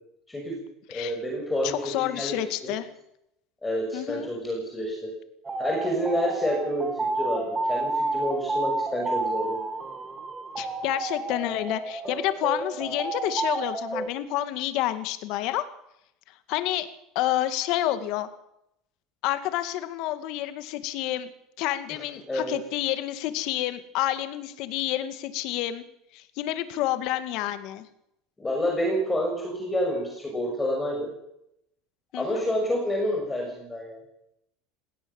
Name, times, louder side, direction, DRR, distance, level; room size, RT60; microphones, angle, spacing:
voice 1, 0.3-0.6 0.9-2.7 3.6-5.1 5.6-9.6 21.9-22.0 22.3-22.5 28.4-31.1 32.1-34.0, equal, 10° left, 0 dB, 6.4 m, -28 dB
voice 2, 1.6-2.9 3.9-4.3 10.6-15.6 16.5-16.9 17.1-18.3 19.2-21.3 21.6-25.8 26.1-27.9 32.1-32.4, left 14 dB, 60° left, 11 dB, 2.2 m, -29 dB
sound 1, 5.4-14.1, right 3 dB, 15° right, 2.4 m, -30 dB
20.5 x 17.5 x 7.3 m, 0.79 s
supercardioid pair, 140°, 0 cm